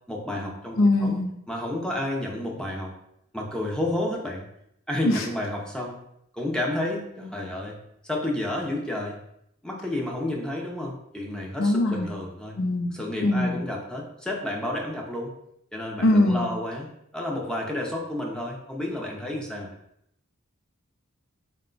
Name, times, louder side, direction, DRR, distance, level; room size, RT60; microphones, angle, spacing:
voice 1, 0.1-1.2 1.5-2.9 3.3-4.4 4.9-6.0 6.3-7.8 8.0-9.2 9.6-12.6 12.9-15.3 15.7-16.9 17.1-19.7, left 1 dB, 5° left, -1 dB, 0.6 m, -31 dB
voice 2, 0.8-1.3 5.0-5.2 11.6-12.1 12.6-12.9 13.2-13.6 16.0-16.5, left 2 dB, 65° left, 4 dB, 0.6 m, -22 dB
4.6 x 2.2 x 3.8 m, 0.77 s
head